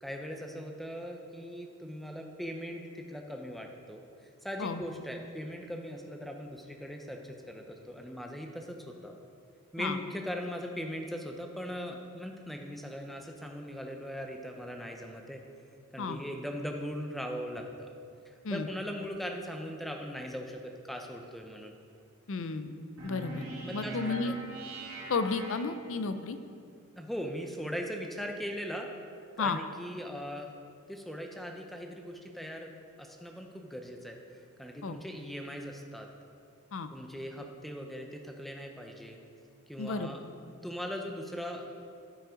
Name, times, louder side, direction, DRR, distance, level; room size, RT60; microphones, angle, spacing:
voice 1, 0.0-4.0 4.4-9.1 9.7-15.4 15.9-17.9 18.3-21.8 23.6-24.0 24.2-24.4 27.0-28.9 29.4-30.5 30.9-32.7 33.0-36.1 36.9-39.2 39.7-40.2 40.6-41.7, equal, ahead, 2 dB, 0.6 m, -40 dB
voice 2, 22.3-22.7 23.0-23.5 23.7-24.3 25.1-26.4 29.4-29.6 34.8-35.0 36.7-36.9 39.8-40.1, left 4 dB, 60° left, 10 dB, 0.5 m, -32 dB
sound 1, 23.0-26.3, right 2 dB, 80° right, 2.2 m, -42 dB
12.5 x 5.3 x 5.1 m, 2.4 s
head